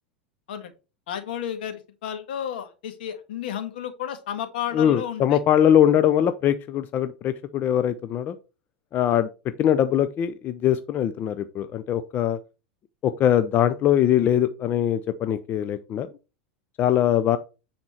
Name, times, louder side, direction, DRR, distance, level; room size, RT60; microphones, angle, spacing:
voice 1, 1.1-5.4, left 9 dB, 75° left, 7 dB, 1.7 m, -32 dB
voice 2, 4.7-8.4 8.9-9.3 9.6-12.4 13.0-16.1 16.8-17.4, left 10 dB, 40° left, 11 dB, 0.6 m, -22 dB
9.6 x 4.4 x 4.3 m, 0.31 s
hypercardioid pair, 100°, 5 cm